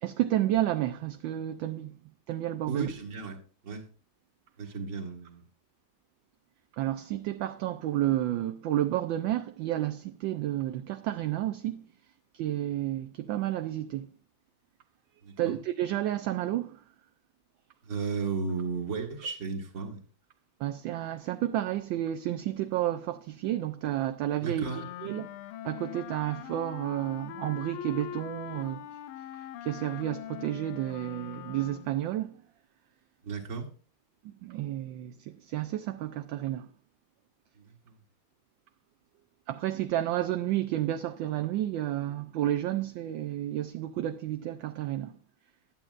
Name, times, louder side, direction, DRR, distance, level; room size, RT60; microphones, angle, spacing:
voice 1, 0.0-1.9 2.3-2.9 6.8-11.9 12.3-14.1 15.4-16.8 20.6-24.6 25.0-25.3 25.6-28.9 29.4-32.4 34.2-36.7 39.5-45.1, right 13 dB, 75° right, 1.1 m, -31 dB
voice 2, 2.7-3.8 4.6-5.4 15.2-15.6 17.8-20.0 24.4-24.8 33.2-33.7 37.6-37.9, right 5 dB, 40° right, 1.7 m, -35 dB
Wind instrument woodwind instrument, 24.6-32.0, left 12 dB, 80° left, 1.4 m, -42 dB
11.5 x 8.5 x 2.4 m
omnidirectional pair, 2.4 m